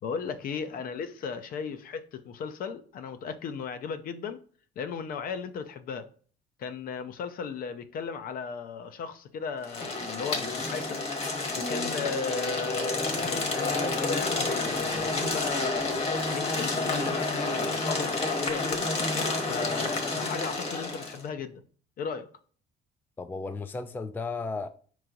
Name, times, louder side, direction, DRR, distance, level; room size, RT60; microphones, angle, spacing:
voice 1, 0.0-4.4 4.8-6.1 6.6-11.0 11.6-18.9 19.4-21.6 22.0-22.3, left 6 dB, 60° left, 0.6 m, -36 dB
sound 1, 9.6-21.2, left 3 dB, 35° left, 1.1 m, -29 dB
voice 2, 23.2-24.7, left 3 dB, 10° left, 0.3 m, -34 dB
4.5 x 3.1 x 3.8 m
cardioid pair, 110°, 17 cm